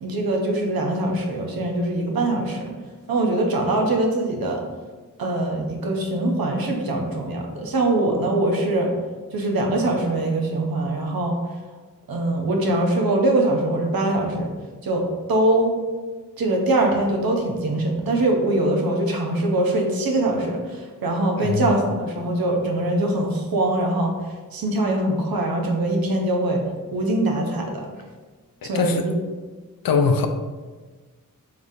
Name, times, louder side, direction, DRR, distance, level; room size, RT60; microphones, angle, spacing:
voice 1, 0.0-2.7 3.1-4.6 5.2-8.9 9.3-11.4 12.1-14.5 14.8-15.7 16.4-24.1 24.5-26.6 26.9-27.8 28.6-29.1, right 1 dB, 90° right, 1 dB, 0.7 m, -22 dB
voice 2, 21.4-21.7 28.6-29.1 29.8-30.3, left 5 dB, 80° left, 7 dB, 0.5 m, -21 dB
3.9 x 3.5 x 2.6 m, 1.4 s
cardioid pair, 45°, 35 cm